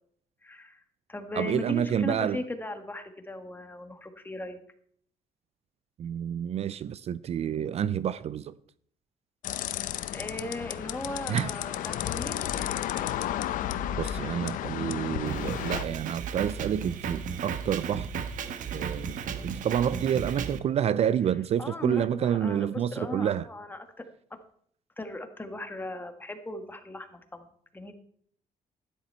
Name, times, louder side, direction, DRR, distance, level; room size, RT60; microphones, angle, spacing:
voice 1, 0.4-0.8 1.1-4.6 10.1-12.7 21.6-24.4 25.0-27.5 27.7-27.9, left 2 dB, 15° left, 1.6 m, -38 dB
voice 2, 1.3-2.4 6.0-8.5 11.3-11.5 13.9-18.1 18.7-23.5, right 9 dB, 50° right, 0.4 m, -29 dB
sound 1, 9.4-15.8, left 11 dB, 80° left, 0.7 m, -32 dB
Drum kit, 15.3-20.6, right 6 dB, 70° right, 1.1 m, -35 dB
12.5 x 10.5 x 4.4 m
cardioid pair, 105°, 14 cm